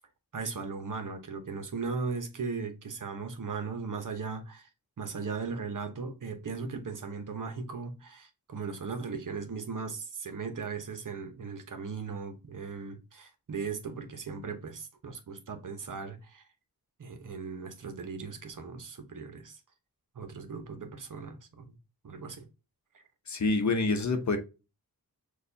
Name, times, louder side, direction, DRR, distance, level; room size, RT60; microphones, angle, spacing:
voice 1, 0.3-4.7 5.0-16.4 17.0-19.6 20.1-21.8 22.0-22.4 22.9-23.0, right 5 dB, 55° right, 0.9 m, -38 dB
voice 2, 23.3-24.4, left 3 dB, 50° left, 0.8 m, -27 dB
6.5 x 2.4 x 2.7 m
wide cardioid pair, 100°, 38 cm